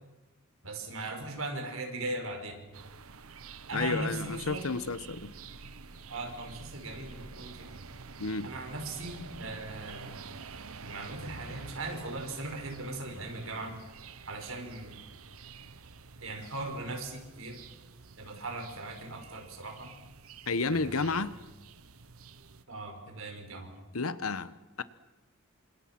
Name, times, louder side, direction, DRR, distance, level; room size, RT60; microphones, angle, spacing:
voice 1, 0.6-2.6 3.7-4.7 6.1-7.8 8.4-10.2 10.8-13.8 14.3-15.0 16.2-17.6 18.2-19.9 20.7-21.2 22.7-23.7, right 2 dB, 70° right, 5.6 m, -39 dB
sound 1, 2.7-22.6, right 4 dB, 85° right, 1.2 m, -48 dB
voice 2, 3.7-5.3 8.2-8.5 20.5-21.3 23.9-24.8, left 3 dB, 85° left, 1.2 m, -31 dB
29.5 x 26.5 x 6.1 m
head